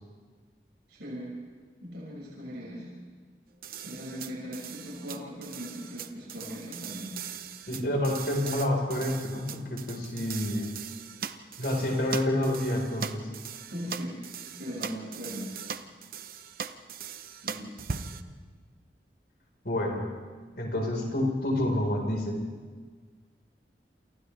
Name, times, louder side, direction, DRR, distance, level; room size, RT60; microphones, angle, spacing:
voice 1, 0.9-1.3 1.8-2.9 3.8-7.2 13.7-14.2 14.5-15.5 17.4-18.0, equal, 90° right, -6 dB, 5.9 m, -39 dB
sound 1, 3.6-18.2, right 6 dB, 55° right, 0.8 m, -40 dB
voice 2, 7.7-10.7 11.6-13.3 19.6-20.1 20.6-22.4, left 1 dB, 60° left, 1 dB, 4.4 m, -28 dB
28.5 x 28.5 x 3.4 m, 1.5 s
head